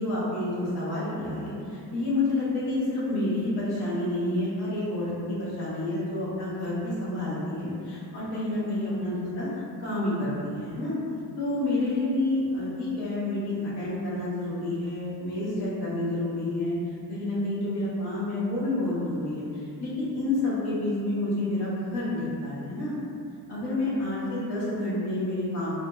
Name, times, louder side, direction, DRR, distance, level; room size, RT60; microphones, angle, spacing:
voice 1, 0.0-10.9 11.4-16.7 17.1-22.9 23.5-25.7, left 2 dB, 70° left, -9 dB, 1.1 m, -29 dB
2.6 x 2.5 x 2.3 m, 2.5 s
wide cardioid pair, 160°, 40 cm